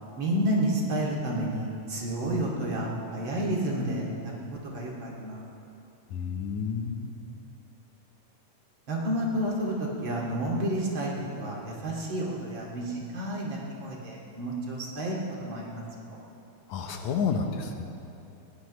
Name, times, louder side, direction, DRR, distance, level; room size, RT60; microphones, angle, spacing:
voice 1, 0.2-4.3 4.7-5.4 8.9-16.2, right 1 dB, 40° right, -3 dB, 2.8 m, -30 dB
voice 2, 6.1-7.1 16.7-17.9, left 6 dB, 70° left, 4 dB, 2.1 m, -30 dB
21.0 x 16.5 x 3.1 m, 2.9 s
omnidirectional pair, 3.6 m